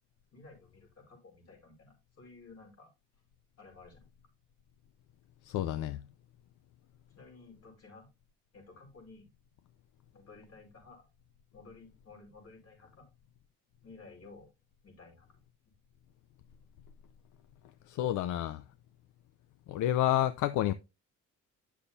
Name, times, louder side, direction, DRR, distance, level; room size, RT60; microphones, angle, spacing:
voice 1, 0.3-2.9 3.6-4.1 7.1-8.1 8.5-9.3 10.1-11.1 11.5-13.1 13.8-14.5 14.8-15.4, left 3 dB, 55° left, 5.1 m, -54 dB
voice 2, 5.4-6.0 17.9-18.6 19.7-20.7, left 12 dB, 80° left, 0.5 m, -29 dB
10.0 x 6.8 x 2.7 m
cardioid pair, 90°, 30 cm